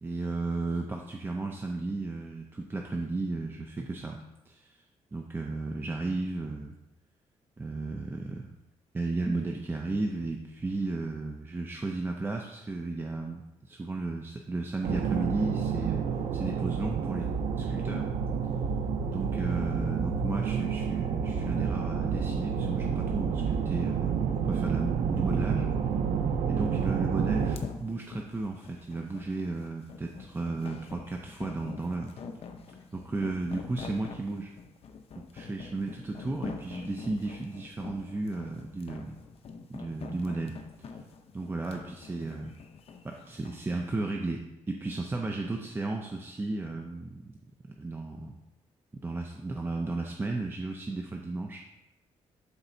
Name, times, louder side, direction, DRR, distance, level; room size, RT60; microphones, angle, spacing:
voice 1, 0.0-4.8 5.1-6.8 7.6-8.5 8.9-17.3 17.6-18.1 19.1-24.2 24.5-25.6 26.5-32.1 32.9-34.5 35.1-39.2 39.7-40.6 41.3-42.5 43.0-47.3 47.8-48.4 48.9-51.6, right 3 dB, 20° right, 1 dB, 0.5 m, -34 dB
sound 1, 14.8-27.6, right 6 dB, 85° right, 0.5 m, -29 dB
sound 2, 27.4-43.6, left 5 dB, 55° left, 0.7 m, -45 dB
11.5 x 4.0 x 2.7 m, 0.92 s
cardioid pair, 125°, 12 cm